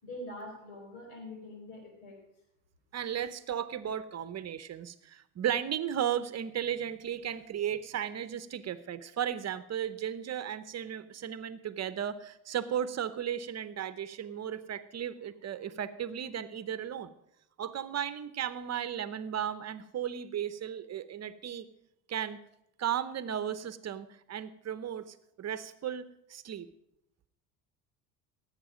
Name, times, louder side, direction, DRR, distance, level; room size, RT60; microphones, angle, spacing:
voice 1, 0.0-2.2, left 1 dB, 85° left, 3 dB, 4.8 m, -44 dB
voice 2, 2.9-17.1 17.6-21.7 22.1-22.4 22.8-26.7, right 9 dB, 35° right, 14 dB, 0.9 m, -35 dB
17.0 x 8.3 x 5.1 m, 0.81 s
supercardioid pair, 95°, 43 cm